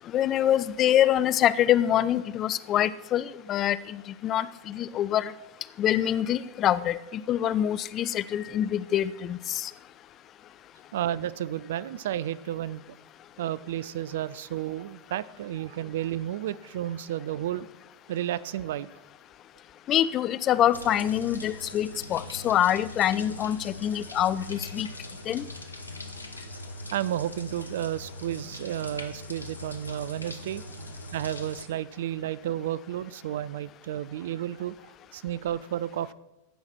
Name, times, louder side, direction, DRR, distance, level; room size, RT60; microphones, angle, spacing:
voice 1, 0.1-5.3 5.8-9.7 19.9-24.9 25.3-25.4, left 11 dB, 30° left, 16 dB, 0.3 m, -25 dB
voice 2, 10.9-12.8 13.4-17.7 18.1-18.9 26.9-30.6 31.1-34.7 35.1-36.1, right 12 dB, 55° right, 19 dB, 0.3 m, -32 dB
sound 1, 20.7-31.6, left 1 dB, 80° left, 0.8 m, -41 dB
15.5 x 5.6 x 4.4 m, 0.98 s
figure-of-eight pair, 90°, 0 cm